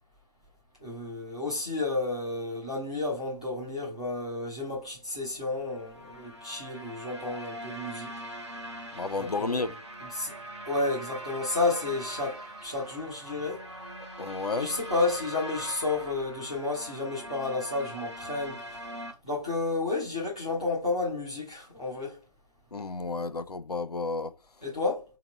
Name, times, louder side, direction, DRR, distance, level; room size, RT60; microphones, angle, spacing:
voice 1, 0.8-8.1 9.2-9.7 10.0-10.3 10.6-13.6 14.5-18.8 19.2-22.2 24.6-25.0, left 3 dB, 10° left, 0.7 m, -31 dB
sound 1, 5.6-19.1, right 1 dB, 45° right, 0.9 m, -42 dB
voice 2, 8.9-9.7 14.2-14.7 22.7-24.3, left 3 dB, 75° left, 0.5 m, -31 dB
3.9 x 2.9 x 4.2 m
figure-of-eight pair, 170°, 20 cm